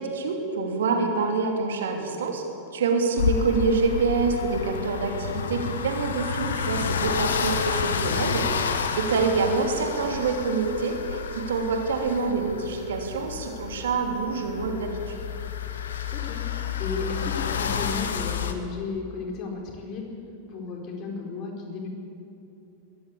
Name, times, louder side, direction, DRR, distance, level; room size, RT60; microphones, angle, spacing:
voice 1, 0.0-2.4 2.7-15.2, right 4 dB, 60° right, 3 dB, 2.8 m, -26 dB
sound 1, 3.2-18.5, left 6 dB, 65° left, 1.4 m, -30 dB
voice 2, 16.1-16.4 16.8-20.1 20.5-21.9, left 4 dB, 40° left, 1 dB, 4.4 m, -34 dB
22.0 x 14.0 x 8.5 m, 2.8 s
figure-of-eight pair, 90°, 0 cm